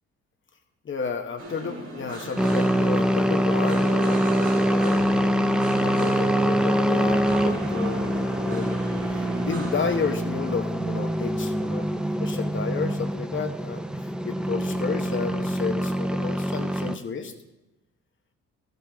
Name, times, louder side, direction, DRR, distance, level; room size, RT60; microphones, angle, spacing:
voice 1, 0.8-5.0 5.8-8.1 8.4-8.8 9.1-11.9 12.2-17.3, left 5 dB, 40° left, 5 dB, 1.1 m, -32 dB
sound 1, 1.4-10.2, right 1 dB, 50° right, 4.7 m, -37 dB
sound 2, 2.4-17.0, equal, 5° right, 0.6 m, -24 dB
13.5 x 9.2 x 3.5 m, 0.96 s
cardioid pair, 90°, 30 cm